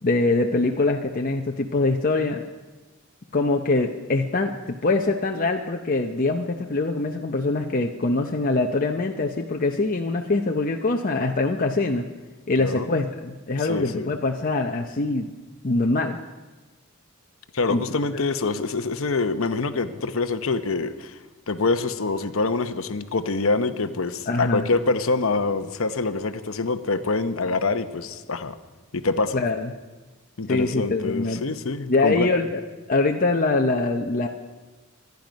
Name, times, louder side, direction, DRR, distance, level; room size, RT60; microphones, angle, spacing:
voice 1, 0.0-2.4 3.3-12.0 12.5-15.4 15.6-16.2 17.7-17.8 24.3-24.7 29.3-29.7 30.5-31.4 31.9-32.6 32.9-34.3, left 3 dB, 40° left, 2 dB, 0.7 m, -23 dB
voice 2, 12.6-13.0 13.6-14.1 17.5-21.2 21.5-28.5 28.9-29.4 30.4-32.3, left 3 dB, 70° left, 10 dB, 0.9 m, -25 dB
25.0 x 10.5 x 5.2 m, 1.3 s
head